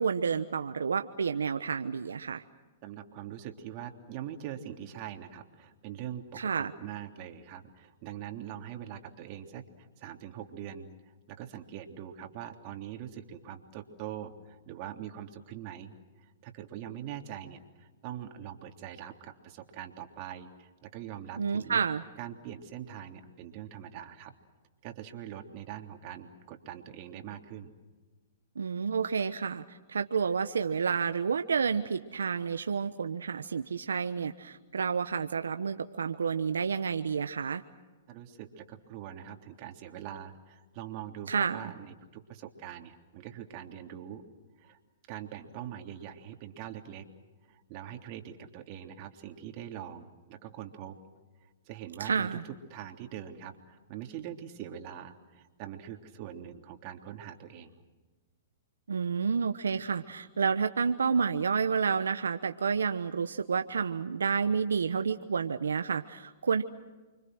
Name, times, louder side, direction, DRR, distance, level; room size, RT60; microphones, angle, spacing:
voice 1, 0.0-2.4 6.4-6.7 21.4-22.0 28.6-37.6 41.3-41.7 52.0-52.4 58.9-66.6, right 6 dB, 85° right, 8 dB, 1.1 m, -30 dB
voice 2, 2.8-10.9 11.3-21.8 22.2-24.3 24.8-27.7 38.1-44.2 44.6-44.8 45.1-47.1 47.5-51.0 51.4-57.7, right 10 dB, 40° right, 4 dB, 3.3 m, -43 dB
29.5 x 25.0 x 6.3 m, 1.3 s
hypercardioid pair, 125°, 0 cm